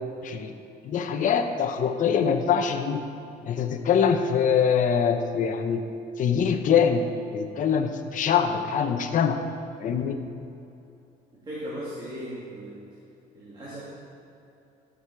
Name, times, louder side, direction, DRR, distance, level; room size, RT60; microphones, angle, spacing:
voice 1, 0.8-3.0 3.4-5.8 6.2-7.1 7.3-9.4 9.8-10.2, left 7 dB, 50° left, 6 dB, 0.8 m, -23 dB
voice 2, 11.3-12.8 13.3-13.8, equal, 25° right, -8 dB, 2.3 m, -37 dB
12.5 x 6.3 x 4.8 m, 2.7 s
cardioid pair, 110°, 17 cm